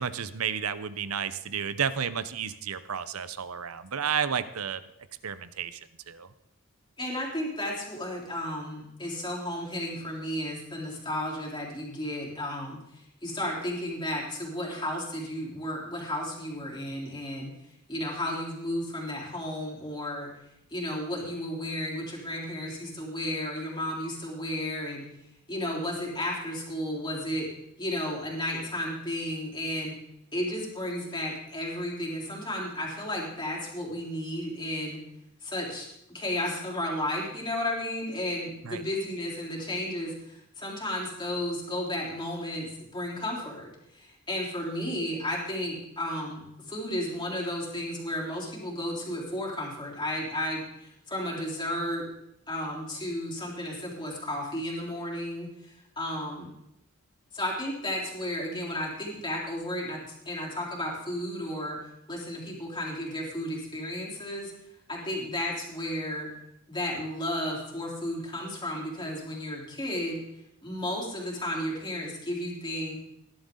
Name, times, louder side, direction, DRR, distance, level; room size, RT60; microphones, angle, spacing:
voice 1, 0.0-4.8 5.2-5.8 6.1-6.3 38.6-38.8, right 7 dB, 75° right, 13 dB, 0.8 m, -31 dB
voice 2, 7.0-17.5 17.9-20.3 20.7-25.1 25.5-27.5 27.8-30.0 30.3-35.0 35.4-52.0 52.5-56.5 57.3-61.8 62.1-64.5 64.9-66.3 66.7-70.2 70.6-73.0, left 1 dB, 20° left, -3 dB, 3.6 m, -33 dB
18.5 x 11.5 x 3.9 m, 0.81 s
head